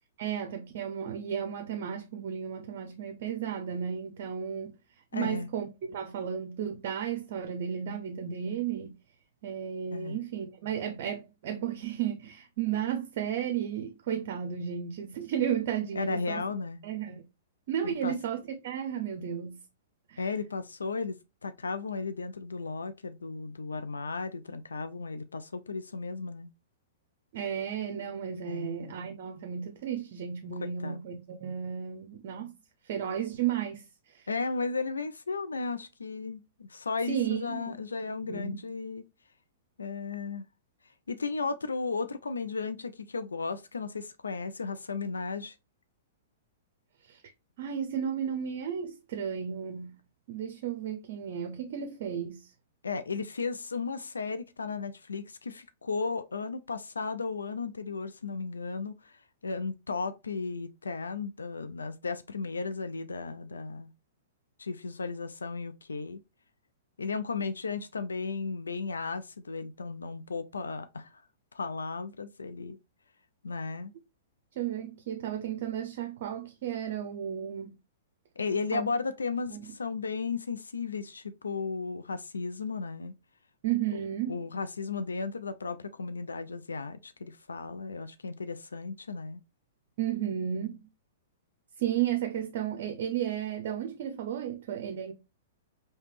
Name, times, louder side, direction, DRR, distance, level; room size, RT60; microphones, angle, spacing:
voice 1, 0.2-4.7 5.1-8.9 9.4-16.4 16.8-17.2 17.7-19.6 20.1-20.3 27.3-32.5 32.8-34.3 37.1-37.8 38.1-38.6 47.0-47.2 47.6-49.9 50.3-52.5 74.6-77.7 78.7-78.9 79.5-79.7 83.6-84.4 90.0-90.9 91.8-95.1, right 9 dB, 55° right, 0.6 m, -33 dB
voice 2, 5.1-5.5 9.9-10.2 16.0-16.8 17.8-18.1 20.2-26.5 28.5-28.9 30.6-31.0 34.3-39.0 39.8-40.5 41.1-45.5 52.8-59.1 59.4-63.9 64.6-66.2 67.0-71.2 71.5-72.8 73.4-73.9 78.4-83.2 84.3-89.4, left 4 dB, 90° left, 0.3 m, -35 dB
3.2 x 2.8 x 3.1 m
hypercardioid pair, 120°, 0 cm